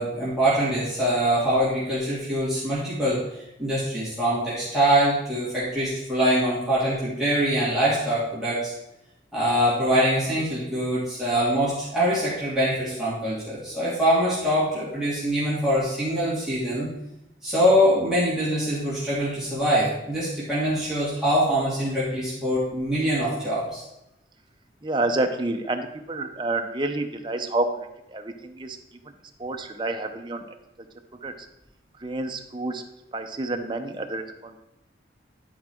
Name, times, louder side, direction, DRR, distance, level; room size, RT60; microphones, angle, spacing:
voice 1, 0.0-8.7 9.3-16.9 17.4-23.8, equal, 5° right, -10 dB, 2.4 m, -24 dB
voice 2, 24.8-28.8 29.0-29.1 29.4-30.4 31.2-31.5 32.0-32.8 33.1-34.6, right 2 dB, 25° right, 5 dB, 0.7 m, -29 dB
11.0 x 4.7 x 4.4 m, 0.88 s
head